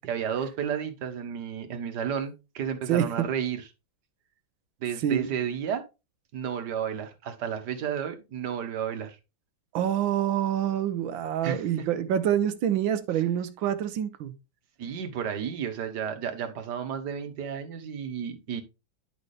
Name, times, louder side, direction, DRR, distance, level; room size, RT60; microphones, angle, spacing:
voice 1, 0.0-3.6 4.8-5.8 6.3-9.2 11.4-11.8 14.8-18.6, right 8 dB, 60° right, 1.6 m, -32 dB
voice 2, 2.9-3.2 5.0-5.3 9.7-14.3, right 10 dB, 80° right, 1.5 m, -26 dB
11.0 x 4.1 x 3.2 m
omnidirectional pair, 2.1 m